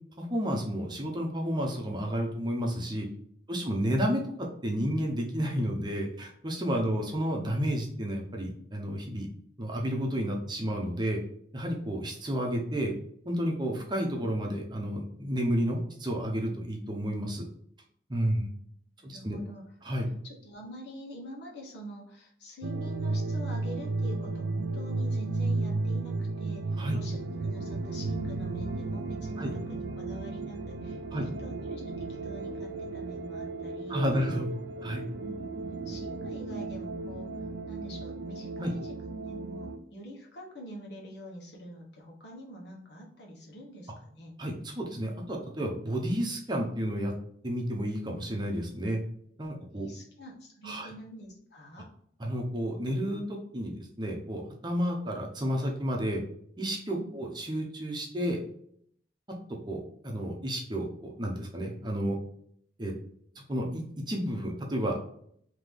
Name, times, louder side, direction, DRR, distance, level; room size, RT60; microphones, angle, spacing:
voice 1, 0.2-3.1 3.5-9.3 9.6-11.2 11.5-12.9 13.3-17.4 18.1-18.5 19.0-19.4 19.8-20.1 26.8-27.0 29.4-29.5 31.1-31.2 33.9-34.5 34.8-35.0 38.6-38.7 44.4-47.1 47.4-49.0 49.4-49.9 50.6-50.9 52.2-56.2 56.6-58.4 59.7-62.2 62.8-62.9 63.5-65.0, equal, 25° right, 0 dB, 0.8 m, -31 dB
voice 2, 18.3-18.7 19.0-19.6 20.2-34.0 35.2-35.5 35.8-37.4 37.7-44.3 49.5-51.9 56.9-57.1, equal, 70° left, -2 dB, 1.3 m, -46 dB
sound 1, 22.6-39.8, right 3 dB, 70° right, 0.4 m, -34 dB
3.8 x 2.9 x 3.3 m, 0.65 s
head